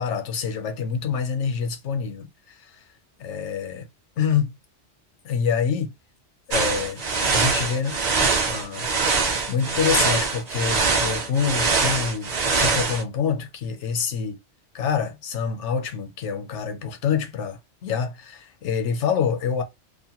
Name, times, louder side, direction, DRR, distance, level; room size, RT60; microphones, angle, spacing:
voice 1, 0.0-2.3 3.2-3.9 4.2-4.5 5.2-5.9 6.5-7.0 7.3-8.0 8.5-8.9 9.5-14.4 14.7-19.6, left 6 dB, 75° left, 0.9 m, -26 dB
sound 1, 6.5-13.0, right 4 dB, 50° right, 0.5 m, -23 dB
2.4 x 2.1 x 2.8 m
omnidirectional pair, 1.2 m